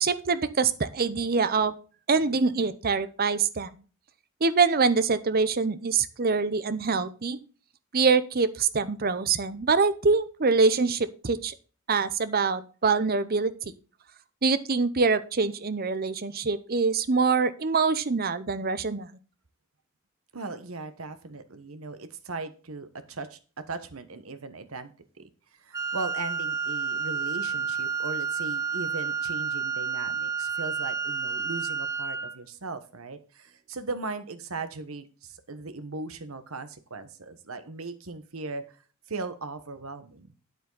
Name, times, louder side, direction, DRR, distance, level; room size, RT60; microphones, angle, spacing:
voice 1, 0.0-1.7 2.1-3.7 4.4-7.4 7.9-11.5 11.9-13.5 14.4-19.1, right 4 dB, 45° right, 14 dB, 0.8 m, -24 dB
voice 2, 20.3-23.4 23.7-24.9 25.2-25.3 25.6-38.8 39.1-40.3, right 3 dB, 90° right, 10 dB, 1.3 m, -38 dB
Wind instrument woodwind instrument, 25.7-32.4, right 6 dB, 15° right, 0.8 m, -30 dB
9.3 x 7.9 x 4.0 m, 0.37 s
head